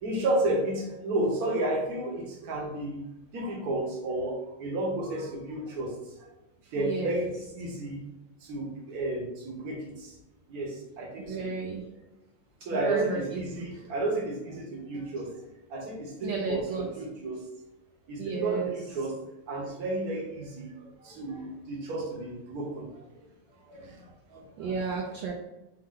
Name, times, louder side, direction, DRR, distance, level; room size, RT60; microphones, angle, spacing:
voice 1, 0.0-3.0 3.3-6.3 6.7-7.3 7.5-8.0 8.4-10.1 10.5-11.5 12.6-15.3 15.7-17.4 18.1-19.1 19.5-23.0 23.6-24.7, right 1 dB, 55° right, -1 dB, 1.3 m, -32 dB
voice 2, 6.8-7.3 11.2-11.8 12.7-13.7 16.2-16.9 18.2-18.7 24.6-25.3, right 5 dB, 70° right, 0 dB, 1.2 m, -32 dB
5.3 x 2.2 x 3.7 m, 0.97 s
omnidirectional pair, 2.3 m